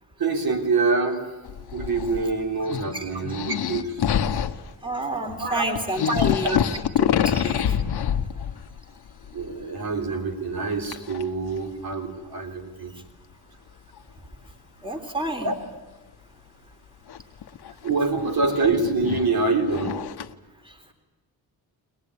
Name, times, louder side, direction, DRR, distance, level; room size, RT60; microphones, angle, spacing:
voice 1, 0.2-1.2 1.7-4.0 5.3-5.8 6.1-6.6 9.3-12.9 15.4-15.5 17.8-20.0, right 3 dB, 65° right, 3 dB, 3.9 m, -25 dB
sound 1, 1.4-2.3 2.6-4.7 5.4-5.5 5.7-8.8 9.1-9.6 10.8-11.2 11.9-12.0 13.9-14.0 17.1-20.3, left 9 dB, 75° left, 1.2 m, -26 dB
voice 2, 4.8-7.8 14.8-15.5, right 1 dB, 15° right, 5 dB, 3.6 m, -30 dB
22.5 x 20.5 x 9.8 m, 1.1 s
cardioid pair, 95°, 39 cm